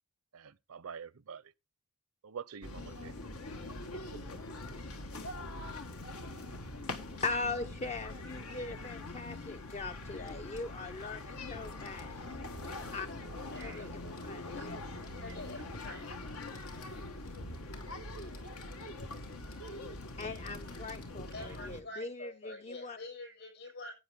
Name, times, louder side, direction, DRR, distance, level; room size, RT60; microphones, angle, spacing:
voice 1, 0.3-1.5 2.2-3.1, right 6 dB, 80° right, 0.6 m, -46 dB
sound 1, 2.6-21.8, left 2 dB, 85° left, 1.5 m, -43 dB
voice 2, 7.2-12.3 12.9-13.1 13.6-14.7 20.2-23.0, left 3 dB, 30° left, 0.5 m, -40 dB
sound 2, 10.1-11.2 11.5-12.0 12.5-14.3 14.9-15.9 16.2-21.6, left 5 dB, 70° left, 3.2 m, -60 dB
voice 3, 13.5-13.9 14.3-14.4 15.2-16.1 21.3-23.9, left 2 dB, 55° left, 7.5 m, -46 dB
15.5 x 8.8 x 3.5 m
head